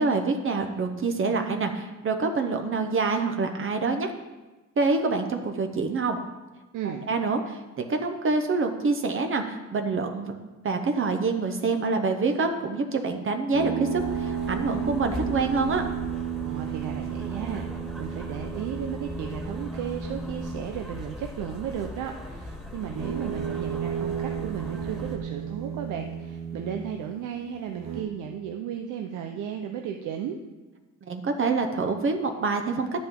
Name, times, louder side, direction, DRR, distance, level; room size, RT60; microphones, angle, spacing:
voice 1, 0.0-4.1 4.8-6.2 6.8-10.3 10.6-15.8 31.1-33.1, right 4 dB, 45° right, 5 dB, 0.9 m, -26 dB
voice 2, 6.7-7.1 16.4-17.7 18.0-30.4, right 8 dB, 90° right, 4 dB, 0.7 m, -34 dB
sound 1, 13.5-20.9 22.8-27.0 27.7-28.0, right 8 dB, 70° right, 1.5 m, -33 dB
sound 2, 14.0-25.2, left 1 dB, ahead, 1.7 m, -40 dB
10.5 x 8.7 x 3.7 m, 1.2 s
cardioid pair, 90°, 30 cm